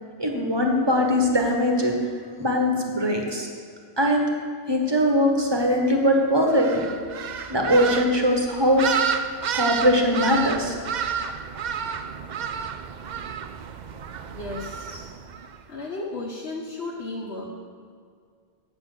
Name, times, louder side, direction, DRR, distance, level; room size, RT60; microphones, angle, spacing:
voice 1, 0.2-2.0 2.4-3.5 4.0-4.3 4.7-6.9 7.5-8.8 9.5-10.7, equal, 25° right, 1 dB, 1.2 m, -21 dB
Hadidah fleeing, 6.5-15.6, right 7 dB, 55° right, 0.5 m, -31 dB
voice 2, 14.3-15.1 15.7-17.4, left 2 dB, 75° left, -5 dB, 1.3 m, -34 dB
8.2 x 7.1 x 6.7 m, 2.1 s
omnidirectional pair, 1.1 m